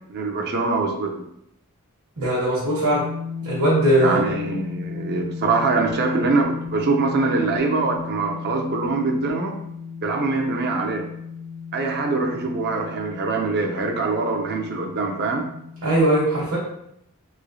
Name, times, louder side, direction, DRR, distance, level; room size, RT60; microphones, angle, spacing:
voice 1, 0.1-1.2 4.0-9.6 10.0-11.1 11.7-15.5, right 3 dB, 45° right, 3 dB, 0.4 m, -23 dB
voice 2, 2.2-3.1 3.4-4.2 15.8-16.6, right 1 dB, 70° right, -6 dB, 1.0 m, -20 dB
sound 1, 2.9-16.0, left 6 dB, 30° left, 0.4 m, -35 dB
3.1 x 3.0 x 2.6 m, 0.76 s
head